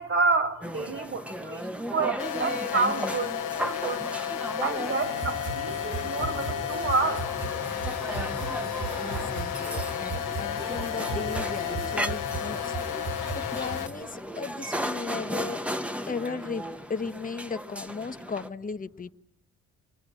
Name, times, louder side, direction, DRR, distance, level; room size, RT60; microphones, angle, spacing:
voice 1, 0.0-4.0 4.6-7.3, right 3 dB, 45° right, 3.0 m, -29 dB
sound 1, 0.6-18.5, equal, 5° right, 1.0 m, -36 dB
sound 2, 2.2-13.9, left 10 dB, 90° left, 1.0 m, -33 dB
sound 3, 5.0-13.8, right 3 dB, 75° right, 5.0 m, -37 dB
voice 2, 9.0-12.8 13.3-15.6 16.1-16.6 16.9-19.1, left 4 dB, 25° left, 1.1 m, -36 dB
27.0 x 21.5 x 9.1 m
cardioid pair, 90°, 30 cm